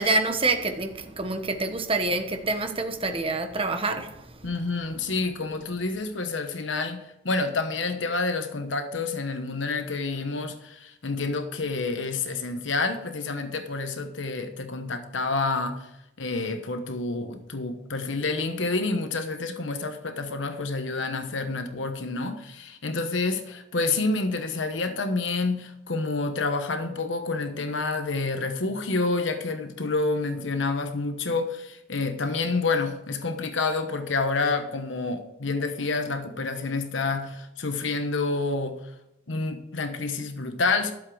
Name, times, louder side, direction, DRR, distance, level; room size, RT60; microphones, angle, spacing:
voice 1, 0.0-4.5, right 3 dB, 30° right, 1.2 m, -27 dB
voice 2, 4.4-15.9 16.2-38.8 39.3-40.9, left 3 dB, 70° left, 1.1 m, -28 dB
12.0 x 7.5 x 4.9 m
head